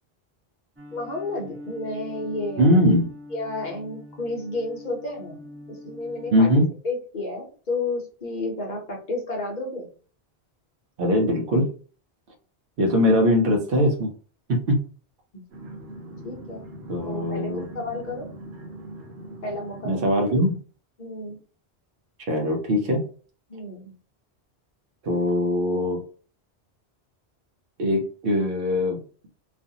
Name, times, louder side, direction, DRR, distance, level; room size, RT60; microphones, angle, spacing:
sound 1, 0.8-6.5, left 2 dB, 15° right, 0.5 m, -42 dB
voice 1, 0.9-3.0 3.3-5.4 5.7-9.9 15.3-15.4 16.2-16.6 17.0-18.3 19.4-20.2 21.0-21.4 23.5-23.9, left 2 dB, 45° left, -1 dB, 0.9 m, -32 dB
voice 2, 2.6-3.1 6.3-6.7 11.0-11.7 12.8-14.1 14.5-14.8 16.9-17.7 19.8-20.5 22.3-23.0 25.0-26.0 27.8-29.0, left 1 dB, 60° right, 2 dB, 0.8 m, -21 dB
sound 2, 15.5-20.5, right 1 dB, 85° right, 1.1 m, -41 dB
2.4 x 2.4 x 2.7 m, 0.40 s
omnidirectional pair, 1.1 m